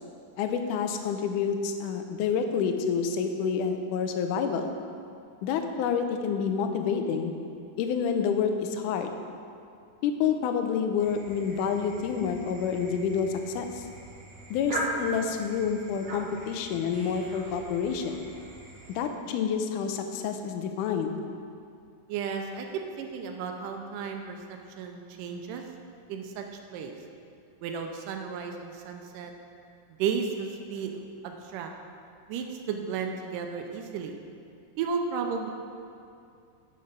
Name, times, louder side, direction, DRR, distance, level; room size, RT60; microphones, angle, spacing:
voice 1, 0.4-4.8 5.4-7.4 7.8-9.1 10.0-13.9 14.5-18.2 19.0-21.2, left 6 dB, 75° left, 6 dB, 2.0 m, -28 dB
sound 1, 11.0-19.0, right 1 dB, 60° right, 1.1 m, -40 dB
voice 2, 22.1-22.7 23.0-25.6 26.1-26.4 26.7-26.9 27.6-29.3 30.0-31.7 32.3-34.2 34.8-35.5, right 6 dB, 85° right, 4 dB, 2.2 m, -33 dB
8.7 x 6.5 x 5.3 m, 2.5 s
omnidirectional pair, 3.8 m